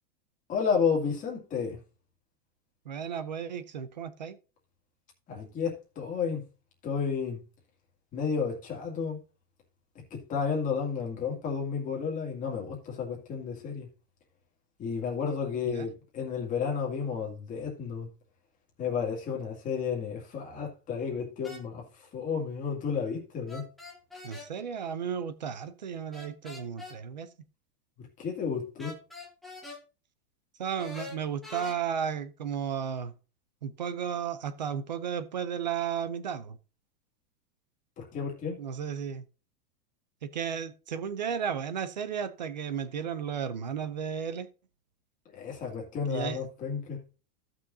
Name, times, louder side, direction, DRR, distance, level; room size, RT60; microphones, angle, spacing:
voice 1, 0.5-1.8 5.3-6.4 6.8-7.4 8.1-9.2 10.1-13.9 14.8-18.1 18.8-21.9 22.1-23.6 28.0-28.9 38.0-38.6 45.3-47.0, left 6 dB, 15° left, 2.2 m, -32 dB
voice 2, 2.9-4.4 15.6-15.9 24.2-27.3 30.6-33.1 33.6-36.6 38.6-39.3 40.2-44.5 46.1-46.4, right 7 dB, 30° right, 0.4 m, -34 dB
sound 1, 21.4-21.6 23.5-24.5 26.1-27.0 28.8-29.8 30.8-31.8, left 3 dB, ahead, 0.7 m, -44 dB
15.5 x 6.2 x 2.6 m
supercardioid pair, 180°, 47 cm